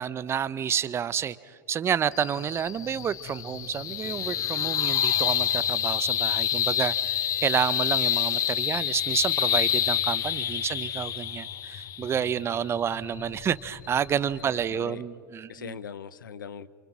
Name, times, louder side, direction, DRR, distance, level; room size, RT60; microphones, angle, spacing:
voice 1, 0.0-15.8, right 8 dB, 25° right, 18 dB, 0.6 m, -29 dB
sound 1, 2.1-14.7, left 10 dB, 30° left, 0.8 m, -28 dB
voice 2, 12.2-12.5 14.4-15.0 15.5-16.7, left 7 dB, 85° left, 17 dB, 0.8 m, -41 dB
29.0 x 24.5 x 6.1 m, 2.2 s
hypercardioid pair, 110°, 11 cm